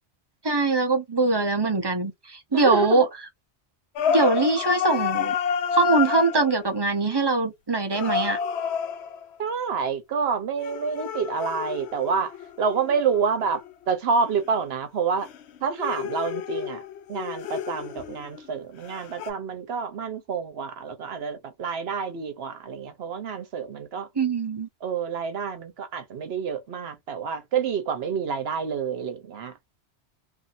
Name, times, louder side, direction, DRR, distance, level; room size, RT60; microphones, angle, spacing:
voice 1, 0.4-3.1 4.1-5.3 5.7-8.4 24.2-24.7, right 3 dB, 25° right, 0.7 m, -22 dB
voice 2, 2.5-3.1 9.4-12.3 12.6-13.6 13.9-15.3 15.6-16.8 17.1-24.1 24.8-29.5, right 6 dB, 70° right, 1.0 m, -28 dB
sound 1, 4.0-6.6 7.9-9.3 10.6-13.7 15.2-18.5 18.8-19.3, left 7 dB, 75° left, 0.9 m, -29 dB
2.6 x 2.6 x 2.6 m
omnidirectional pair, 1.1 m